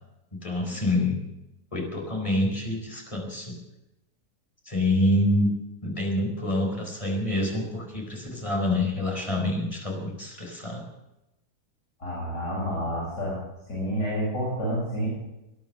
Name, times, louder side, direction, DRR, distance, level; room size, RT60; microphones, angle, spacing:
voice 1, 0.3-1.2 1.7-3.6 4.7-5.5 5.8-10.9, left 1 dB, 20° left, 1 dB, 4.5 m, -27 dB
voice 2, 12.0-13.4 13.7-15.1, equal, 85° left, -7 dB, 7.5 m, -29 dB
20.0 x 11.0 x 6.5 m, 0.92 s
omnidirectional pair, 1.8 m